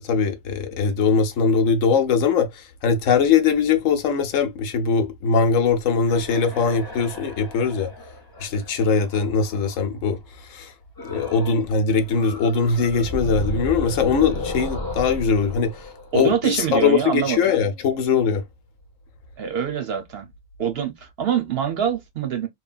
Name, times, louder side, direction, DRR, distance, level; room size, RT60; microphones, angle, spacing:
voice 1, 0.0-7.9 8.4-18.4, left 5 dB, 75° left, 1.0 m, -21 dB
sound 1, 6.0-9.9 11.0-11.7 12.0-16.9, left 2 dB, 25° left, 0.6 m, -34 dB
voice 2, 16.1-17.4 19.4-20.3 20.6-22.5, right 8 dB, 60° right, 0.7 m, -25 dB
3.2 x 2.2 x 2.3 m
omnidirectional pair, 1.3 m